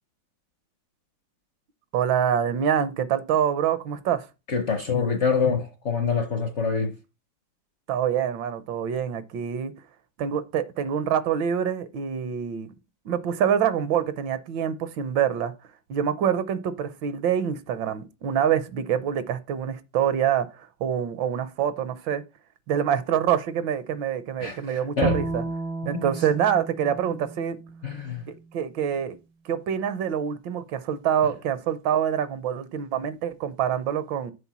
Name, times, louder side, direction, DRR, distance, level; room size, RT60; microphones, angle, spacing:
voice 1, 1.9-4.3 7.9-9.7 10.2-12.7 13.0-15.5 15.9-22.2 22.7-25.4 25.9-27.6 28.3-29.2 29.4-34.3, right 9 dB, 75° right, 1.4 m, -26 dB
voice 2, 4.5-7.0 24.4-25.2 25.8-26.0 27.8-28.2, left 5 dB, 55° left, 0.8 m, -26 dB
Bowed string instrument, 25.0-28.3, right 3 dB, 50° right, 0.4 m, -33 dB
7.0 x 4.3 x 6.0 m
omnidirectional pair, 2.1 m